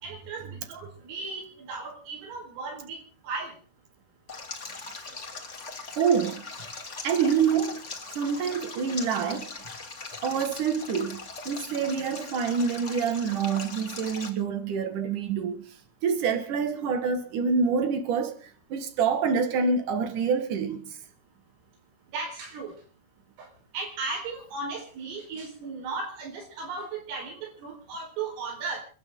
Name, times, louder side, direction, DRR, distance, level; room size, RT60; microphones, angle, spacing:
voice 1, 0.0-3.0 3.3-3.5 22.1-22.7 23.4-23.5 23.7-28.8, right 4 dB, 80° right, 7.3 m, -36 dB
Stream, 4.3-14.3, left 3 dB, 30° left, 1.3 m, -40 dB
voice 2, 6.0-6.4 7.0-7.8 8.1-9.5 10.2-15.6 16.0-21.0, right 6 dB, 55° right, 2.6 m, -26 dB
29.5 x 12.5 x 3.8 m
omnidirectional pair, 5.9 m